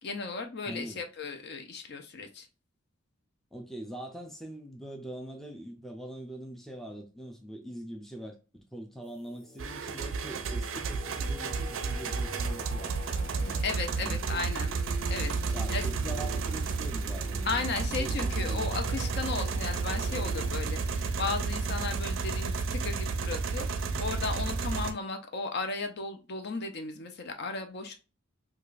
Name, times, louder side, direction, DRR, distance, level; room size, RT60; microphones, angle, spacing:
voice 1, 0.0-2.5 13.4-15.9 17.4-28.0, left 4 dB, 50° left, 0.5 m, -35 dB
voice 2, 0.7-1.0 3.5-13.5 14.0-14.5 15.5-19.1 23.9-24.2, right 1 dB, ahead, 0.4 m, -43 dB
Singing, 9.0-20.5, right 2 dB, 25° left, 1.0 m, -46 dB
sound 1, 9.6-24.9, right 4 dB, 70° right, 0.4 m, -32 dB
sound 2, 15.4-23.0, left 1 dB, 80° left, 0.9 m, -48 dB
4.8 x 2.3 x 2.4 m
head